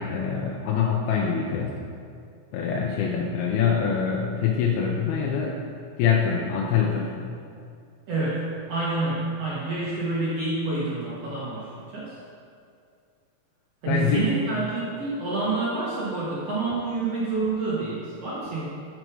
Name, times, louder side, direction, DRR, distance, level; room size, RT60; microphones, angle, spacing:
voice 1, 0.0-1.8 2.5-5.6 6.0-7.2 13.9-14.3, left 7 dB, 85° left, -1 dB, 2.5 m, -24 dB
voice 2, 8.1-12.2 13.8-18.7, right 3 dB, 60° right, -8 dB, 1.7 m, -28 dB
6.5 x 6.0 x 4.7 m, 2.3 s
omnidirectional pair, 4.3 m